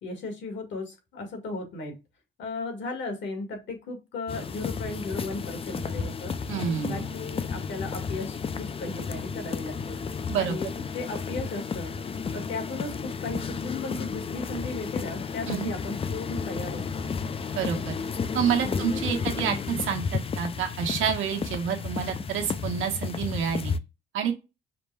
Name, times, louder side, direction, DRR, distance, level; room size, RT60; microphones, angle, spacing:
voice 1, 0.0-1.9 2.4-6.3 6.8-10.0 10.4-11.9 12.3-17.1 18.6-19.0, left 3 dB, 70° left, 3 dB, 1.8 m, -36 dB
sound 1, 4.3-23.8, left 5 dB, 30° left, 0.4 m, -32 dB
voice 2, 6.5-7.0 10.3-10.6 15.5-15.7 17.5-17.9 18.3-23.7 24.1-24.3, right 8 dB, 85° right, 2 dB, 1.2 m, -28 dB
5.0 x 2.2 x 3.3 m, 0.26 s
cardioid pair, 90°, 20 cm